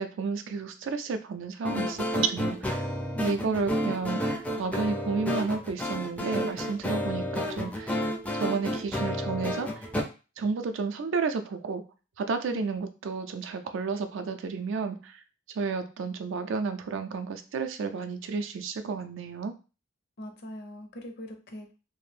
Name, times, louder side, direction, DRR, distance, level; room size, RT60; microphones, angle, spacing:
voice 1, 0.0-2.8 3.2-8.0 8.3-9.9 10.4-11.8 12.2-15.2 15.6-19.5, right 5 dB, 65° right, 8 dB, 0.4 m, -31 dB
sound 1, 1.6-10.0, equal, 5° left, 0.4 m, -31 dB
voice 2, 3.1-3.7 12.5-12.9 20.2-21.7, equal, 55° left, 4 dB, 0.5 m, -41 dB
2.5 x 2.0 x 3.2 m, 0.32 s
head